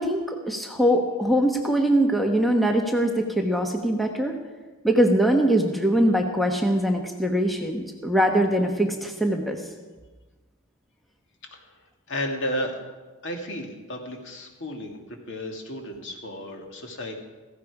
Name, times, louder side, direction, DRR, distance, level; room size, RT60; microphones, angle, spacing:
voice 1, 0.0-4.3 4.8-9.6, right 1 dB, ahead, 3 dB, 1.1 m, -22 dB
voice 2, 12.1-12.7 13.2-17.1, equal, 60° left, 2 dB, 2.3 m, -33 dB
16.0 x 15.5 x 4.9 m, 1.3 s
head